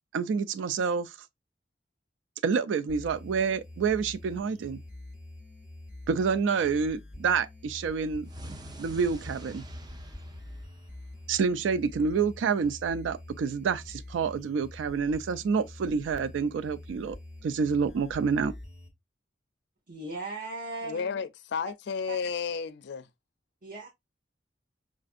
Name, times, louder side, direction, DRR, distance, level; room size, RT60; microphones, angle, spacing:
voice 1, 0.1-1.2 2.4-4.8 6.1-8.3 8.8-9.6 11.3-17.2 17.4-18.5, right 5 dB, 85° right, 0.3 m, -28 dB
sound 1, 2.9-18.9, left 1 dB, 5° right, 0.8 m, -46 dB
sound 2, 8.2-11.4, right 1 dB, 25° right, 0.4 m, -45 dB
voice 2, 19.9-21.2 22.1-22.2 23.6-23.9, right 2 dB, 50° right, 0.8 m, -38 dB
voice 3, 20.8-23.1, left 6 dB, 65° left, 0.4 m, -32 dB
5.0 x 2.5 x 2.4 m
head